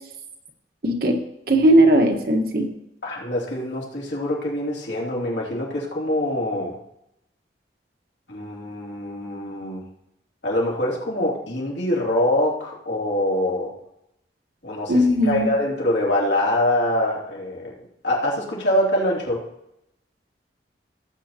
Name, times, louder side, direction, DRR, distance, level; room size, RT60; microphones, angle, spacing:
voice 1, 0.8-1.2 1.5-2.7 14.9-15.5, right 1 dB, 55° right, 3 dB, 1.4 m, -17 dB
voice 2, 3.0-6.8 8.3-9.8 10.4-13.7 14.6-14.9 15.2-17.8 18.0-19.4, left 1 dB, 80° left, -4 dB, 3.0 m, -24 dB
17.5 x 7.8 x 2.9 m, 0.81 s
head